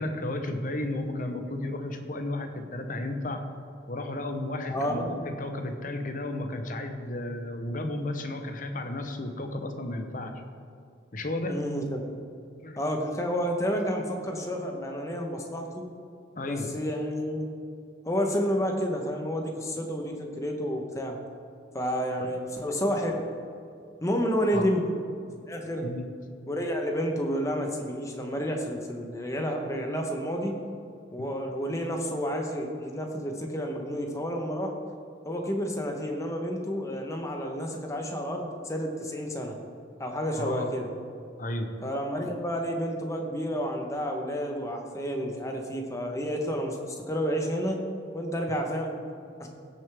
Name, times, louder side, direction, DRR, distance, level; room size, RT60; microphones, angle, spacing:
voice 1, 0.0-3.4 3.9-10.3 11.1-11.6 12.6-12.8 16.4-16.7 22.2-22.3 24.5-24.7 25.8-26.0 40.4-40.7 41.4-41.7, left 1 dB, 45° left, 5 dB, 0.9 m, -33 dB
voice 2, 4.7-5.1 11.5-12.0 12.8-15.8 16.4-17.5 18.0-21.2 21.7-23.2 24.0-24.9 25.5-25.9 26.5-30.5 31.1-34.7 35.2-39.5 40.0-40.9 41.8-47.8 48.1-49.0 49.4-49.5, equal, 15° left, 2 dB, 1.0 m, -30 dB
16.5 x 6.7 x 3.5 m, 2.5 s
head